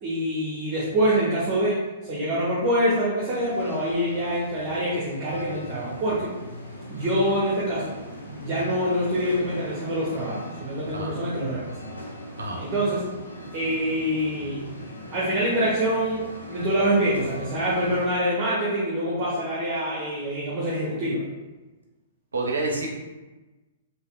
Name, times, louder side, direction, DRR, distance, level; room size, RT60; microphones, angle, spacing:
voice 1, 0.0-6.3 6.9-7.9 8.3-11.9 12.6-13.0 13.5-14.6 15.1-21.3, equal, 35° right, -7 dB, 0.8 m, -25 dB
sound 1, 3.3-18.1, left 1 dB, 85° left, 0.7 m, -40 dB
voice 2, 12.4-12.7 22.3-22.9, right 2 dB, 75° right, -1 dB, 0.6 m, -28 dB
3.4 x 2.7 x 2.3 m, 1.1 s
figure-of-eight pair, 110°, 0 cm